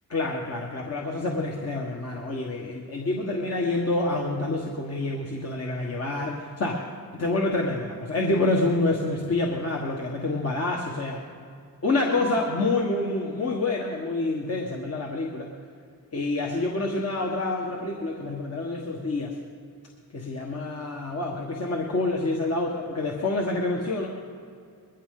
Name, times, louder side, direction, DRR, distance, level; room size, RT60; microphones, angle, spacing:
voice 1, 0.1-6.9 7.2-11.2 11.8-15.5 16.1-19.4 20.1-24.1, left 2 dB, 40° left, -1 dB, 1.5 m, -27 dB
21.0 x 16.0 x 3.8 m, 2.4 s
cardioid pair, 115°, 38 cm